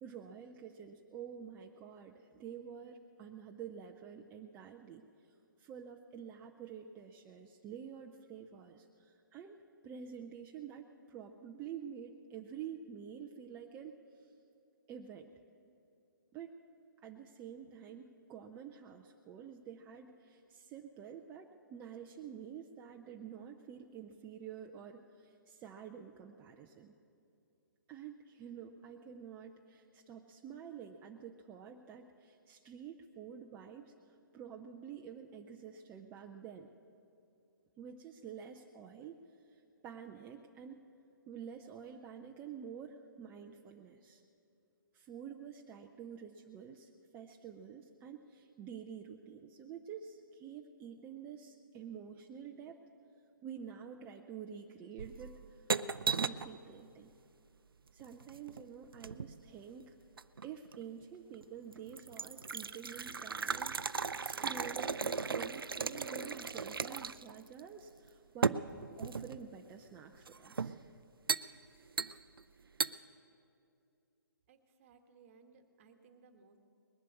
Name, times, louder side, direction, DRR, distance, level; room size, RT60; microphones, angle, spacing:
voice 1, 0.0-5.1 5.6-9.6 9.8-14.3 14.9-15.3 16.3-16.5 17.0-26.9 27.9-36.7 37.8-39.2 39.5-40.8 41.3-44.2 44.9-52.8 53.4-55.7 56.1-57.1 57.9-60.0 60.4-68.6 69.0-70.8, right 8 dB, 15° right, 2 dB, 0.5 m, -49 dB
sound 1, 55.0-56.5 58.0-59.4 60.2-60.8 61.3-61.4 61.7-67.3 67.6-67.7 68.4-69.4 70.3-70.8 71.3-71.5 72.0-72.4 72.8-72.9, right 5 dB, 80° right, 0.4 m, -36 dB
voice 2, 74.5-76.6, right 5 dB, 35° right, 7 dB, 1.3 m, -62 dB
20.5 x 7.5 x 8.3 m, 2.6 s
figure-of-eight pair, 140°, 12 cm